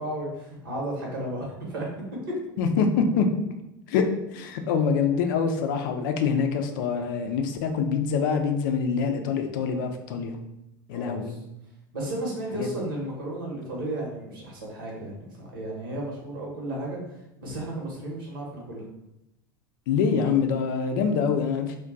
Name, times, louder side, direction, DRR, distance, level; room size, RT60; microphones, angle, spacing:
voice 1, 0.0-1.9 10.9-11.4 11.9-17.0 17.4-18.9, right 1 dB, 75° right, -2 dB, 1.0 m, -33 dB
voice 2, 2.6-3.3 3.9-4.1 4.3-10.4 10.9-11.4 12.5-12.7 19.9-21.8, left 6 dB, 65° left, 5 dB, 0.4 m, -25 dB
2.3 x 2.2 x 3.8 m, 0.87 s
hypercardioid pair, 80°, 12 cm